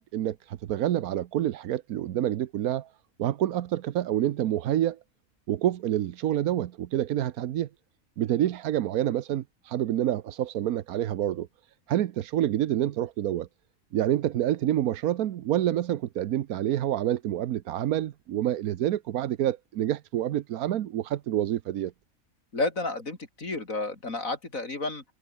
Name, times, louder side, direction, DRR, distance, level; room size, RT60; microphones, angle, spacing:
voice 1, 0.0-2.9 3.2-5.0 5.5-7.7 8.2-11.5 11.9-13.5 13.9-21.9, right 12 dB, 90° right, 1.3 m, -27 dB
voice 2, 22.5-25.0, left 3 dB, 65° left, 4.5 m, -31 dB
omnidirectional pair, 1.5 m